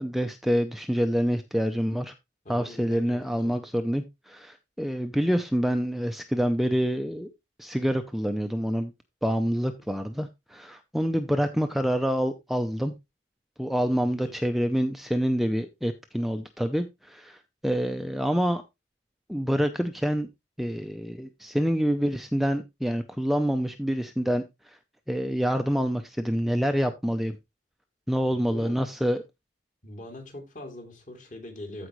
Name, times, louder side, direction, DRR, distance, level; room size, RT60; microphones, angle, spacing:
voice 1, 0.0-2.1 2.5-7.3 7.6-8.9 9.2-12.9 13.6-17.4 17.6-18.6 19.3-20.3 20.6-24.4 25.1-27.4 28.1-29.2, equal, ahead, 0.6 m, -27 dB
voice 2, 2.4-3.6 14.0-14.4 28.3-28.8 29.8-31.9, left 1 dB, 45° left, 2.8 m, -42 dB
14.5 x 5.0 x 3.1 m
head